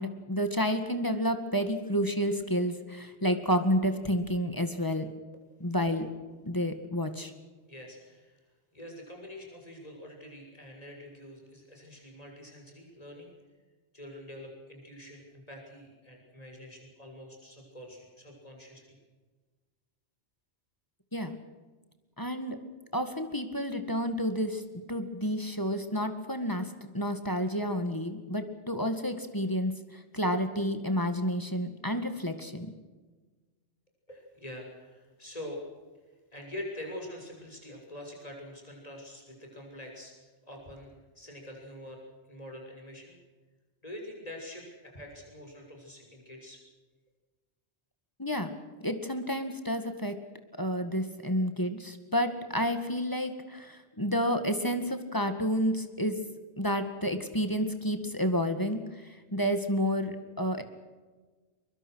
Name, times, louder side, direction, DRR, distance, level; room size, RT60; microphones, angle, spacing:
voice 1, 0.0-5.1 5.6-6.1 6.4-7.3 21.1-21.4 22.2-22.6 22.9-24.6 24.9-32.7 48.2-48.5 48.8-50.2 50.6-56.2 56.6-60.6, equal, 20° left, 8 dB, 1.9 m, -30 dB
voice 2, 7.7-8.4 8.7-13.3 13.9-19.0 34.1-35.6 36.3-40.1 40.5-42.0 42.3-43.2 43.8-46.6, left 1 dB, 35° left, 1 dB, 6.9 m, -45 dB
23.0 x 23.0 x 6.4 m, 1.3 s
omnidirectional pair, 1.2 m